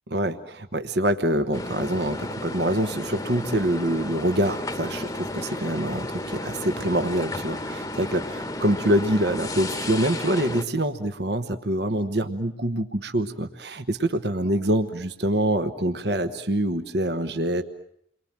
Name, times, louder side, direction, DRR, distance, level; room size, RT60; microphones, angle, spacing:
voice 1, 0.1-17.6, right 1 dB, 60° right, 8 dB, 1.2 m, -25 dB
sound 1, 1.5-10.6, left 1 dB, 15° left, 1.1 m, -33 dB
29.5 x 23.0 x 7.5 m, 0.70 s
head